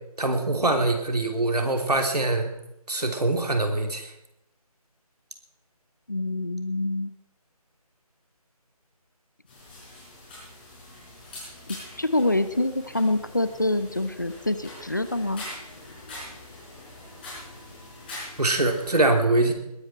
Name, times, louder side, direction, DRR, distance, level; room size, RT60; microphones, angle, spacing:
voice 1, 0.2-2.5 2.9-4.1 18.4-19.5, right 2 dB, 80° right, 4 dB, 3.2 m, -23 dB
voice 2, 6.1-7.1 11.7-15.5, left 2 dB, 30° left, 12 dB, 0.6 m, -26 dB
sound 1, 9.5-19.0, left 1 dB, 15° left, 5.0 m, -43 dB
20.5 x 12.0 x 4.5 m, 0.84 s
figure-of-eight pair, 175°, 20 cm